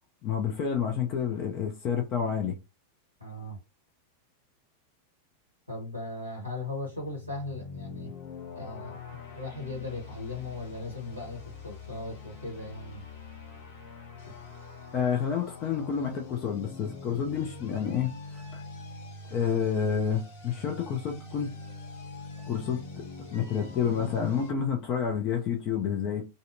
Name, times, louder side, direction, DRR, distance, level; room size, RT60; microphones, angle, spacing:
voice 1, 0.2-2.6 14.9-18.6 19.3-21.5 22.5-26.3, left 7 dB, 35° left, 0.5 m, -29 dB
voice 2, 3.2-3.6 5.7-8.1 8.5-9.0 9.3-13.0, left 2 dB, 90° left, 1.0 m, -38 dB
sound 1, 6.7-24.5, left 4 dB, 55° left, 1.0 m, -44 dB
2.5 x 2.1 x 2.6 m
figure-of-eight pair, 90°, 0 cm